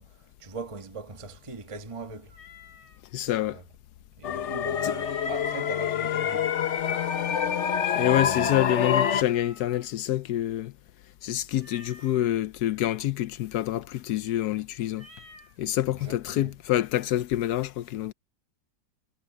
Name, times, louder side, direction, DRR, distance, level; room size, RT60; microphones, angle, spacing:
voice 1, 0.0-2.4 3.4-3.6 4.2-6.5 8.0-8.6 16.0-16.5, right 4 dB, 20° right, 1.2 m, -41 dB
Meow, 2.3-3.0 6.5-7.3 9.3-10.1 11.6-12.3 14.9-15.6, left 2 dB, 85° right, 6.5 m, -52 dB
voice 2, 3.1-3.6 4.8-4.9 7.9-10.7 11.2-15.1 15.6-18.1, left 13 dB, 75° left, 1.1 m, -27 dB
sound 1, 4.2-9.2, left 8 dB, 50° left, 1.0 m, -26 dB
omnidirectional pair, 1.8 m